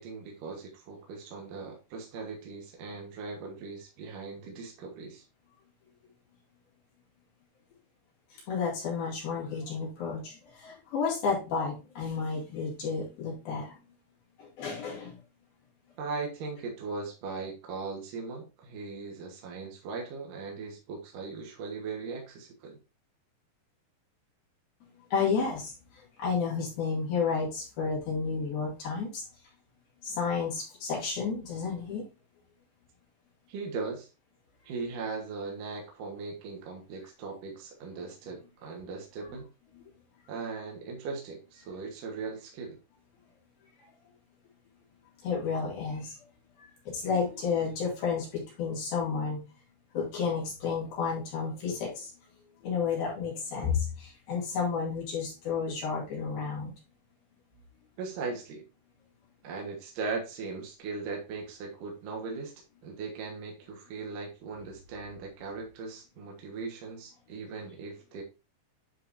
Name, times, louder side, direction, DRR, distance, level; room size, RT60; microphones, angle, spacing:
voice 1, 0.0-5.3 16.0-22.8 33.5-34.1 34.6-39.5 40.3-42.8 58.0-58.6 59.4-62.5 62.8-68.2, right 4 dB, 65° right, 0 dB, 2.2 m, -39 dB
voice 2, 8.5-13.8 14.4-15.2 25.1-25.7 26.2-29.2 30.0-32.0 45.2-46.2 46.6-49.4 49.9-52.1 52.6-56.7, left 5 dB, 60° left, -4 dB, 3.8 m, -31 dB
9.7 x 4.7 x 2.5 m, 0.30 s
omnidirectional pair, 5.2 m